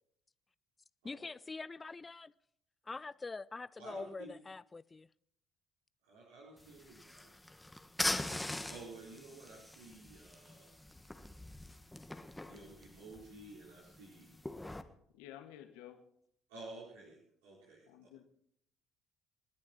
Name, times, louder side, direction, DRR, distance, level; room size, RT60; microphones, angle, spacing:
voice 1, 1.0-2.3 2.9-5.1, left 3 dB, 25° left, 0.5 m, -44 dB
voice 2, 3.8-4.3 6.0-7.3 8.7-10.8 12.5-14.4 16.5-18.1, right 2 dB, 80° right, 4.2 m, -52 dB
sound 1, 6.6-14.8, left 1 dB, 10° left, 1.7 m, -42 dB
voice 3, 15.1-16.0 17.9-18.2, left 11 dB, 75° left, 1.9 m, -52 dB
29.0 x 10.5 x 4.4 m
hypercardioid pair, 55°, 0 cm